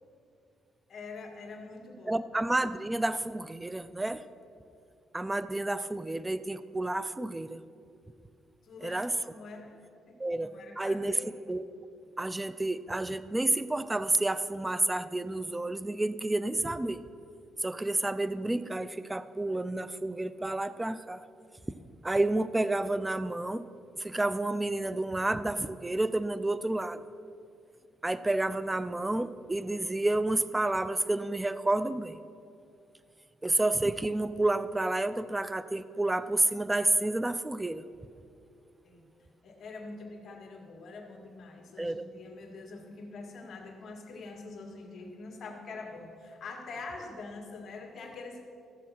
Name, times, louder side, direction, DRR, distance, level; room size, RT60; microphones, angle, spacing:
voice 1, 0.9-2.2 8.6-9.8 10.1-11.3 38.8-39.0 39.4-48.5, left 3 dB, 55° left, 1 dB, 2.0 m, -45 dB
voice 2, 2.1-4.2 5.1-7.6 8.8-9.1 10.2-11.2 11.5-11.7 12.2-17.0 17.6-21.2 22.0-23.6 24.0-27.0 28.0-32.2 33.4-37.8 41.8-42.0, right 2 dB, 15° right, 14 dB, 0.4 m, -30 dB
14.0 x 7.1 x 5.8 m, 2.5 s
cardioid pair, 90°, 0 cm